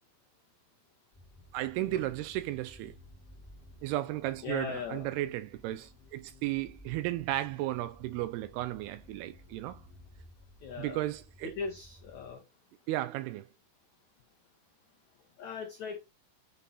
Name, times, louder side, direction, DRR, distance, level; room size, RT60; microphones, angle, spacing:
sound 1, 1.1-12.3, left 1 dB, 55° left, 0.8 m, -56 dB
voice 1, 1.5-3.0 3.8-9.8 10.8-11.5 12.9-13.5, right 15 dB, 85° right, 2.3 m, -34 dB
voice 2, 4.4-5.1 10.6-11.0 11.4-12.4 15.4-16.0, left 5 dB, 90° left, 1.6 m, -39 dB
9.1 x 4.0 x 4.1 m
omnidirectional pair, 4.9 m